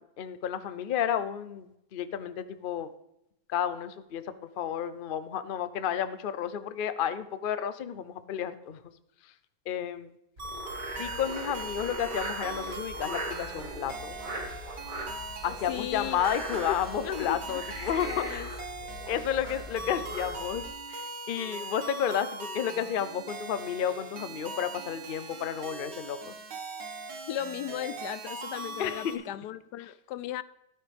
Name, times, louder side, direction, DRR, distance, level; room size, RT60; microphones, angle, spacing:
voice 1, 0.2-2.9 3.5-8.8 9.2-9.3 9.7-10.1 11.0-14.1 15.4-18.5 19.1-20.6 20.9-26.3 28.8-29.2, left 9 dB, 60° left, 0.5 m, -32 dB
Frog, 10.4-20.7, right 1 dB, 55° right, 2.7 m, -40 dB
sound 1, 10.4-29.1, right 2 dB, 90° right, 2.2 m, -41 dB
voice 2, 15.7-16.2 16.7-16.8 17.0-17.6 18.0-18.5 27.3-30.4, left 12 dB, 80° left, 1.2 m, -36 dB
14.0 x 12.5 x 3.4 m
omnidirectional pair, 1.8 m